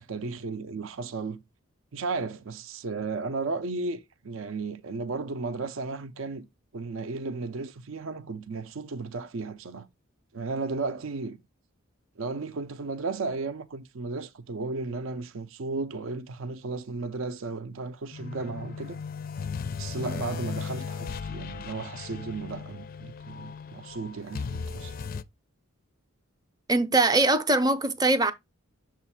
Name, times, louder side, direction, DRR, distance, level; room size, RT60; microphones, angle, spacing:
voice 1, 0.0-1.4 1.9-6.5 6.7-9.9 10.3-11.4 12.2-19.0 19.8-24.9, right 3 dB, 65° right, 0.5 m, -34 dB
sound 1, 18.1-25.2, left 5 dB, 40° left, 0.4 m, -37 dB
voice 2, 26.7-28.3, right 2 dB, 20° right, 0.6 m, -22 dB
7.0 x 2.5 x 5.5 m
head